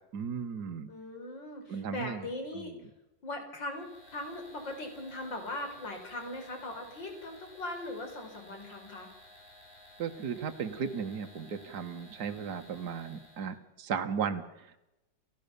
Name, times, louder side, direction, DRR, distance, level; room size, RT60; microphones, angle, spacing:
voice 1, 0.1-0.9 1.7-2.3 2.5-2.7 10.0-14.8, right 6 dB, 65° right, 6 dB, 1.9 m, -36 dB
voice 2, 0.9-2.7 3.2-3.9 4.1-9.1, left 2 dB, 90° left, 5 dB, 4.9 m, -39 dB
sound 1, 3.7-13.6, left 1 dB, 50° left, 6.2 m, -55 dB
29.5 x 15.5 x 6.9 m, 0.92 s
omnidirectional pair, 1.9 m